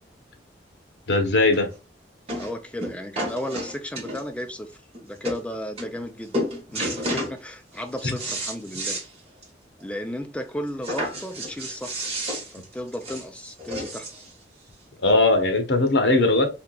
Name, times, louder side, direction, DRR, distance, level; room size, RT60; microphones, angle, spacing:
voice 1, 1.1-1.7 15.0-16.5, left 2 dB, 80° left, 0.9 m, -19 dB
sound 1, 1.5-1.6 2.3-2.5 2.8-4.4 4.9-5.0 5.2-5.4 5.8-6.1 6.3-7.3 7.8-9.1 9.4-9.5 9.8-9.9 10.8-14.3 15.1-15.2, equal, 35° right, 1.4 m, -31 dB
voice 2, 2.4-4.7 5.0-9.0 9.8-12.0 12.5-14.1, equal, 5° left, 0.4 m, -34 dB
3.5 x 2.8 x 2.3 m
head